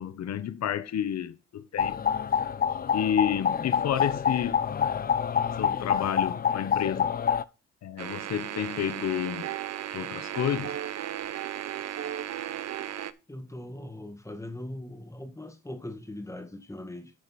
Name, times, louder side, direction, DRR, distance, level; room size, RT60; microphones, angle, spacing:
voice 1, 0.0-2.0 2.9-4.6 5.5-7.2 7.8-9.5 9.9-10.8, left 9 dB, 60° left, 1.0 m, -30 dB
sound 1, 1.8-7.4, left 7 dB, 30° left, 0.5 m, -27 dB
sound 2, 8.0-13.1, right 11 dB, 60° right, 0.7 m, -35 dB
voice 2, 13.3-17.1, left 1 dB, 10° left, 1.9 m, -40 dB
11.5 x 5.0 x 4.2 m
cardioid pair, 90°, 30 cm